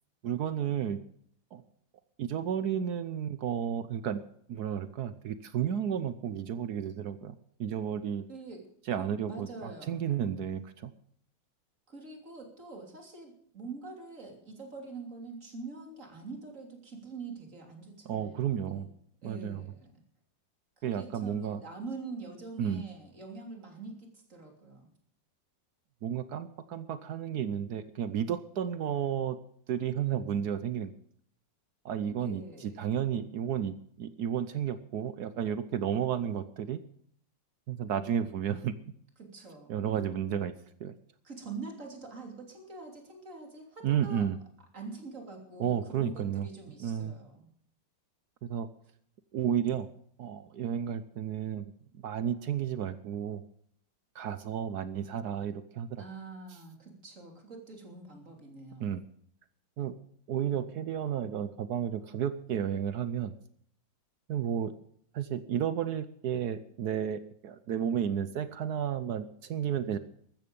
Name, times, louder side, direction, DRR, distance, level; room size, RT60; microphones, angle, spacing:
voice 1, 0.2-1.0 1.5-1.6 2.2-4.2 4.5-8.2 8.9-10.9 18.1-18.9 19.2-19.6 20.8-21.6 22.6-22.9 26.0-29.4 29.7-30.9 31.8-36.8 37.7-38.7 39.7-40.5 40.8-41.0 43.8-44.4 45.6-46.5 46.8-47.1 48.4-48.7 49.3-49.9 50.2-51.7 52.0-53.4 54.1-56.0 58.8-59.0 59.8-59.9 60.3-63.3 64.3-64.7 65.1-70.0, right 9 dB, 65° right, 13 dB, 1.2 m, -32 dB
voice 2, 8.3-8.6 9.0-10.0 11.9-18.9 19.2-20.0 20.8-24.9 32.2-32.8 39.2-39.7 41.2-44.3 44.7-47.5 56.0-58.9 60.4-60.8, right 3 dB, 40° right, 3 dB, 3.5 m, -45 dB
14.5 x 13.5 x 5.3 m, 0.65 s
omnidirectional pair, 2.0 m